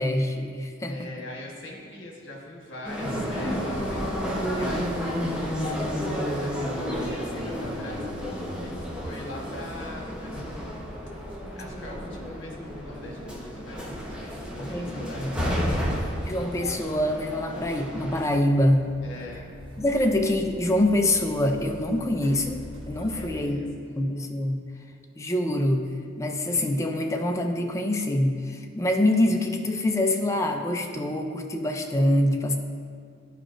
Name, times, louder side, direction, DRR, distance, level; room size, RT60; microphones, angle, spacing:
voice 1, 0.0-1.0 14.6-15.3 16.2-18.9 19.8-23.6 24.0-24.6 25.2-25.9 26.2-32.6, left 1 dB, 15° left, 4 dB, 0.4 m, -25 dB
voice 2, 0.9-5.3 5.6-10.8 11.6-15.4 19.0-19.5 23.1-24.0, left 1 dB, 65° left, -1 dB, 1.3 m, -42 dB
sound 1, 2.8-18.2, equal, 5° right, 0.9 m, -31 dB
sound 2, 3.7-23.3, equal, 25° right, 1.1 m, -44 dB
11.0 x 4.9 x 2.5 m, 2.1 s
head